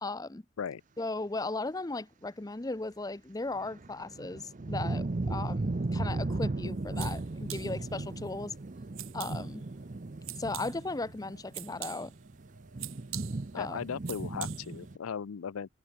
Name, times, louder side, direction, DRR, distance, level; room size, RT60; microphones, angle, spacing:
voice 1, 0.0-0.4 1.0-8.5 9.1-9.6 10.4-12.1 13.5-13.8, left 2 dB, 15° left, 0.5 m, -36 dB
sound 1, 3.6-15.0, right 2 dB, 35° right, 0.6 m, -36 dB
sound 2, 6.7-14.9, right 15 dB, 80° right, 2.1 m, -47 dB
voice 2, 13.5-15.7, left 7 dB, 85° left, 0.5 m, -37 dB
head